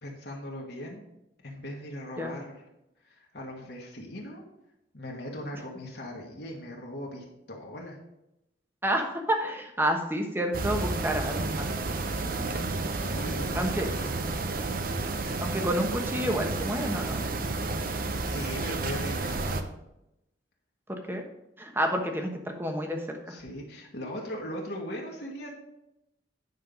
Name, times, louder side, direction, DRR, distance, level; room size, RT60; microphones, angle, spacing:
voice 1, 0.0-1.0 1.4-2.6 3.0-4.4 4.9-8.0 12.1-13.7 14.0-14.4 17.9-19.6 23.3-25.5, left 1 dB, 60° left, -2 dB, 1.7 m, -39 dB
voice 2, 8.8-11.7 13.5-13.9 15.4-17.2 20.9-21.2 21.6-23.4, equal, 10° right, 3 dB, 1.1 m, -29 dB
sound 1, 10.5-19.6, right 3 dB, 50° right, 0.8 m, -31 dB
9.8 x 5.7 x 5.4 m, 0.87 s
head